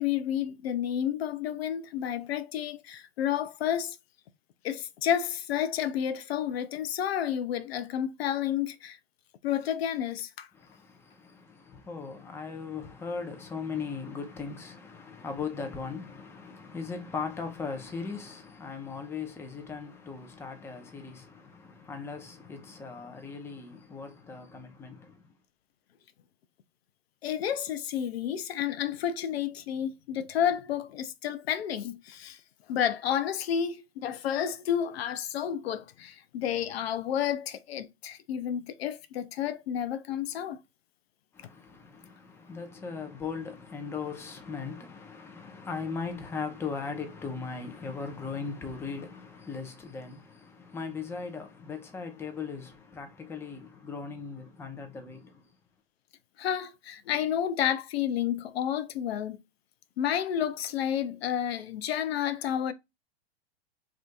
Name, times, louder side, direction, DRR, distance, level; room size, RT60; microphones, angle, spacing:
voice 1, 0.0-4.0 4.6-9.0 9.4-10.5 27.2-32.4 32.7-40.6 56.4-59.4 60.0-62.7, left 9 dB, 70° left, 0.5 m, -30 dB
voice 2, 10.5-25.2 41.3-55.4, left 5 dB, 10° left, 0.5 m, -38 dB
2.6 x 2.4 x 3.4 m
hypercardioid pair, 110°, 32 cm